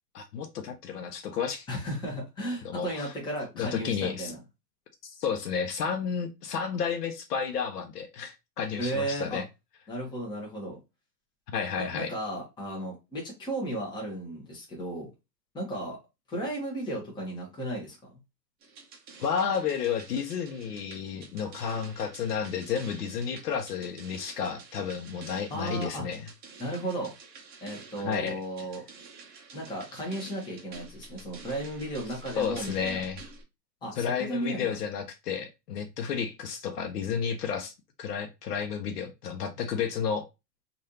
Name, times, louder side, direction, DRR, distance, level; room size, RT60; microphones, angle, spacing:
voice 1, 0.1-1.7 2.6-3.1 3.6-4.3 5.0-9.4 11.5-12.1 19.2-26.3 28.0-28.4 32.4-33.2 34.0-37.7 38.0-40.2, left 7 dB, 65° left, 0.8 m, -32 dB
voice 2, 1.7-4.4 8.8-9.4 9.9-10.8 11.8-15.1 15.5-16.0 16.3-18.1 25.5-26.1 26.6-27.1 27.6-28.8 29.5-33.0 33.8-34.7, right 1 dB, 10° left, 1.0 m, -34 dB
sound 1, 18.6-33.4, right 4 dB, 20° right, 0.7 m, -49 dB
3.2 x 2.6 x 2.8 m
hypercardioid pair, 135°, 50 cm